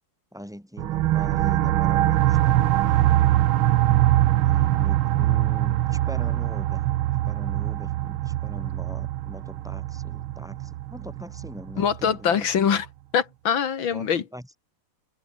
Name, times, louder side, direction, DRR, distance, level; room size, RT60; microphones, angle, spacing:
voice 1, 0.3-3.3 4.4-6.8 7.2-12.5 13.9-14.6, equal, ahead, 5.4 m, -41 dB
sound 1, 0.8-12.1, right 14 dB, 80° right, 1.6 m, -23 dB
voice 2, 11.8-12.9 13.1-14.2, left 7 dB, 70° left, 2.5 m, -23 dB
omnidirectional pair, 2.3 m